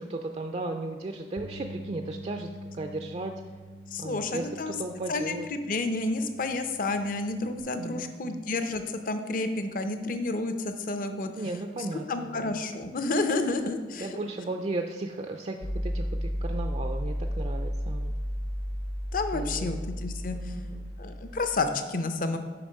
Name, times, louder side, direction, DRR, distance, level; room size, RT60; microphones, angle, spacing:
voice 1, 0.0-2.5 2.7-3.4 4.0-5.5 7.8-8.4 11.4-12.6 14.0-18.1 19.3-19.8 20.3-20.9, right 2 dB, 35° right, 5 dB, 0.3 m, -35 dB
Bass guitar, 1.4-7.6, equal, 75° right, 0.7 m, -45 dB
voice 2, 3.9-4.7 5.1-11.3 12.1-14.1 19.1-20.5 21.0-22.4, left 3 dB, 50° left, 8 dB, 0.6 m, -30 dB
sound 1, 15.6-21.7, equal, 70° left, 1.3 m, -32 dB
7.0 x 5.1 x 5.3 m, 1.4 s
head